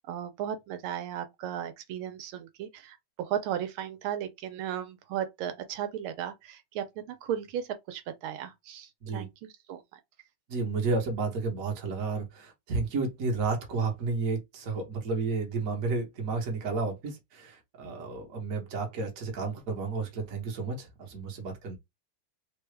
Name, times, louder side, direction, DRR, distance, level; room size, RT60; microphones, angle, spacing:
voice 1, 0.1-10.0, right 10 dB, 90° right, 1.5 m, -36 dB
voice 2, 10.5-21.8, right 3 dB, 50° right, 1.3 m, -32 dB
3.8 x 2.2 x 3.2 m
omnidirectional pair, 2.2 m